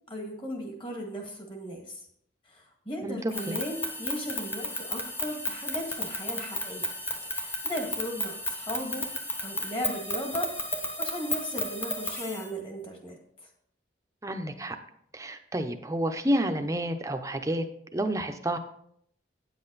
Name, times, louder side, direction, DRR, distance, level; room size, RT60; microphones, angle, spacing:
voice 1, 0.1-2.0 2.5-6.9 7.3-9.1 9.4-10.5 11.0-13.2, equal, 30° left, 2 dB, 1.9 m, -36 dB
sound 1, 3.3-12.5, left 1 dB, 10° left, 1.1 m, -33 dB
voice 2, 14.2-14.8 15.1-17.6 17.9-18.6, right 1 dB, 15° right, 7 dB, 0.7 m, -29 dB
9.4 x 7.8 x 4.0 m, 0.70 s
head